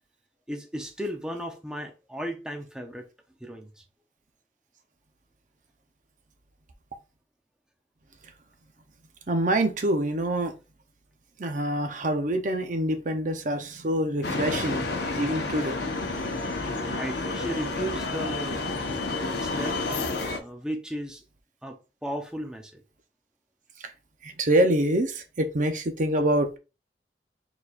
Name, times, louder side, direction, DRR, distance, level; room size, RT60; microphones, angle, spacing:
voice 1, 0.5-3.1 3.4-3.7 16.8-18.6 19.4-21.2 21.6-22.8, equal, 5° right, 0.6 m, -35 dB
voice 2, 9.3-10.5 11.4-14.9 15.2-15.8 23.8-23.9 24.2-26.6, right 1 dB, 45° right, 0.6 m, -25 dB
sound 1, 14.2-20.4, left 3 dB, 65° left, 0.9 m, -30 dB
4.5 x 4.0 x 2.4 m
head